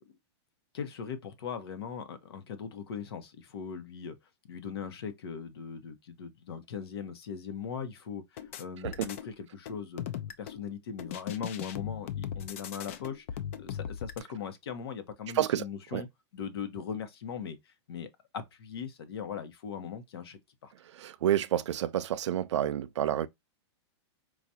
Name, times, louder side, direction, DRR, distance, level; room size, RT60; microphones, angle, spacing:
voice 1, 0.7-4.2 4.5-10.0 10.4-13.3 13.6-16.1 16.3-18.1 18.3-20.7, left 7 dB, 60° left, 1.0 m, -39 dB
sound 1, 8.4-9.3 9.7-10.6 11.0-14.2, left 9 dB, 30° left, 0.3 m, -38 dB
voice 2, 21.0-23.3, right 11 dB, 80° right, 0.5 m, -29 dB
4.8 x 2.4 x 2.7 m
supercardioid pair, 175°, 15 cm